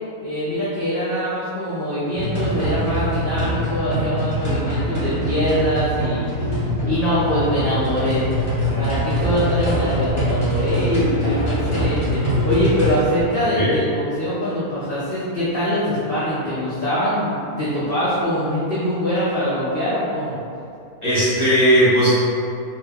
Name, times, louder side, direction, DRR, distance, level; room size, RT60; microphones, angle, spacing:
voice 1, 0.2-6.2 6.8-8.3 8.8-20.4, equal, 60° left, -10 dB, 0.6 m, -23 dB
sound 1, 2.1-13.0, equal, 30° left, 0.9 m, -23 dB
voice 2, 21.0-22.1, equal, 20° right, -14 dB, 1.0 m, -16 dB
2.8 x 2.1 x 3.3 m, 2.5 s
omnidirectional pair, 1.6 m